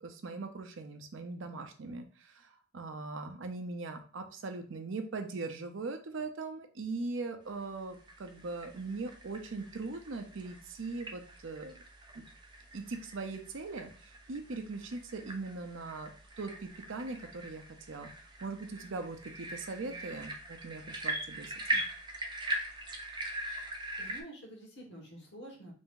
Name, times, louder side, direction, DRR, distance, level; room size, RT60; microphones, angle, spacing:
voice 1, 0.0-11.7 12.1-12.2 12.7-16.1 16.4-18.1 18.4-21.8, right 3 dB, 70° right, 7 dB, 0.6 m, -40 dB
sound 1, 7.8-24.2, right 1 dB, 25° right, 0.6 m, -41 dB
voice 2, 24.0-25.7, right 1 dB, 60° left, -1 dB, 1.5 m, -49 dB
3.4 x 2.6 x 3.7 m, 0.40 s
head